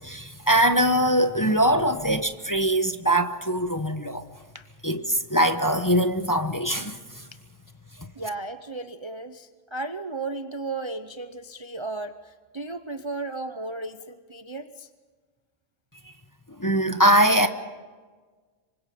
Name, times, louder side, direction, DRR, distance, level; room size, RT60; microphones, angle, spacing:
voice 1, 0.0-4.2 4.8-7.0 16.6-17.5, right 1 dB, 15° left, 0.9 m, -22 dB
voice 2, 8.2-14.9, right 3 dB, 30° right, 0.7 m, -35 dB
26.5 x 24.5 x 5.2 m
omnidirectional pair, 1.4 m